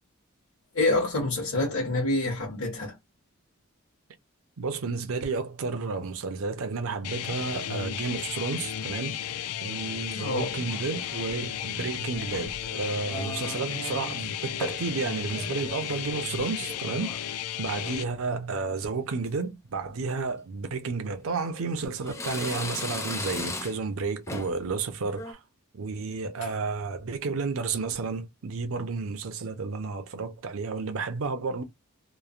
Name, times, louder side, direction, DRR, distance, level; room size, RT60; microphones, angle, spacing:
voice 1, 0.7-3.0 10.1-10.5, left 2 dB, 65° left, 1.0 m, -27 dB
voice 2, 4.6-9.2 9.6-17.2 17.6-25.4 25.7-31.6, right 4 dB, 70° right, 0.5 m, -31 dB
sound 1, 7.0-18.0, left 10 dB, 90° left, 0.4 m, -34 dB
sound 2, 10.7-11.4 12.1-12.7 13.1-14.3 14.6-15.0 15.3-17.2 17.6-18.0 18.6-18.9 19.3-19.4 20.3-20.4 21.1-21.7 22.1-23.9 24.3-24.6 25.0-25.3, left 2 dB, 15° left, 0.4 m, -39 dB
3.0 x 2.0 x 2.4 m
head